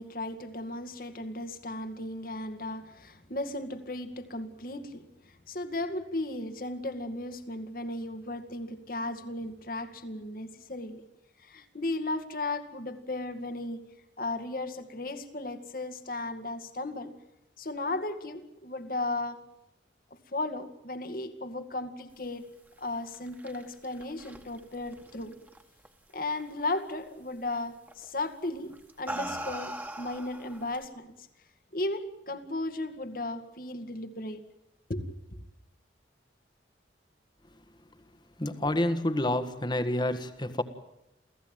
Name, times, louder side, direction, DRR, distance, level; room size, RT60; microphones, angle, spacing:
voice 1, 0.0-11.0 11.4-13.9 14.2-17.1 17.6-19.4 20.1-22.5 22.8-25.4 26.1-31.1 31.7-34.5 34.9-35.0 35.3-35.4, left 2 dB, 50° left, 2.1 m, -35 dB
sound 1, 23.0-25.9 26.2-26.6 27.9-28.1 28.7-30.8, right 1 dB, 10° right, 2.1 m, -40 dB
voice 2, 38.4-40.6, left 1 dB, 25° left, 1.7 m, -28 dB
28.5 x 16.5 x 9.1 m
head